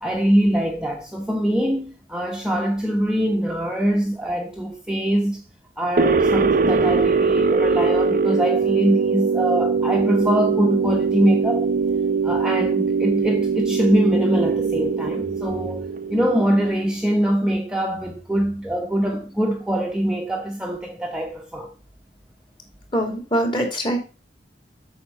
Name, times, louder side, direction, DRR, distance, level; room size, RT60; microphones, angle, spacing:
voice 1, 0.0-5.4 5.8-11.7 12.2-21.7, equal, 5° right, 1.1 m, -23 dB
sound 1, 6.0-16.8, right 4 dB, 50° right, 0.8 m, -21 dB
voice 2, 22.9-24.0, equal, 30° left, 2.7 m, -23 dB
8.6 x 5.8 x 5.4 m
head